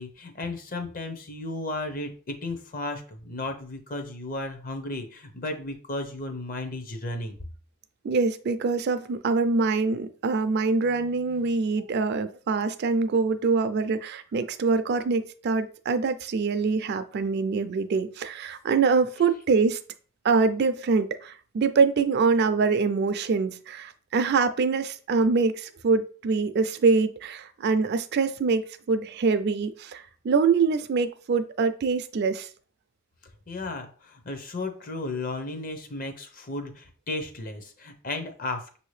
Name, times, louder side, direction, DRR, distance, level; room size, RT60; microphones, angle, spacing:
voice 1, 0.0-7.4 10.8-11.1 11.4-11.5 33.5-38.8, left 2 dB, 40° left, 0.7 m, -34 dB
voice 2, 8.0-19.8 20.2-28.6 28.9-32.5, right 4 dB, 50° right, 0.3 m, -24 dB
6.2 x 2.7 x 3.2 m
head